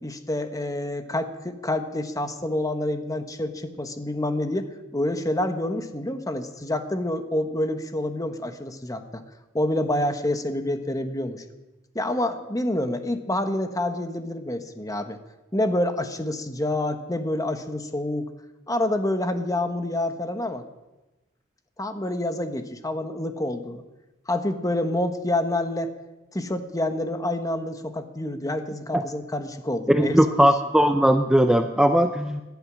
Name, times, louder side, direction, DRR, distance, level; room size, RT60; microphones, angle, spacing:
voice 1, 0.0-9.2 9.5-11.4 11.9-15.2 15.5-18.3 18.7-20.6 21.8-23.8 24.3-25.9 26.3-30.4, left 1 dB, 20° left, 8 dB, 1.2 m, -27 dB
voice 2, 29.9-32.4, equal, 5° right, 6 dB, 0.6 m, -19 dB
18.5 x 12.0 x 6.3 m, 1.0 s
head